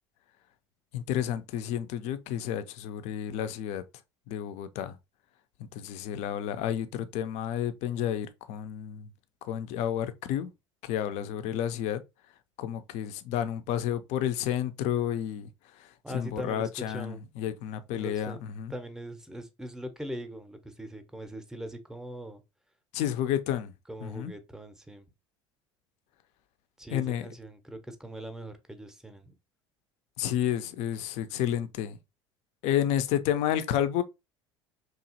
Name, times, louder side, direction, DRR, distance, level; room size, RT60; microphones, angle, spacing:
voice 1, 0.9-3.8 4.3-4.9 5.7-9.1 9.4-10.5 10.8-12.0 12.6-15.5 15.8-18.7 22.9-23.7 24.0-24.3 26.9-27.3 30.2-32.0 32.6-34.0, left 10 dB, 55° left, 0.4 m, -31 dB
voice 2, 16.0-17.2 17.9-18.4 18.7-22.4 23.9-25.1 26.8-29.3, right 1 dB, 5° right, 0.6 m, -41 dB
2.9 x 2.4 x 2.7 m
hypercardioid pair, 70°, 14 cm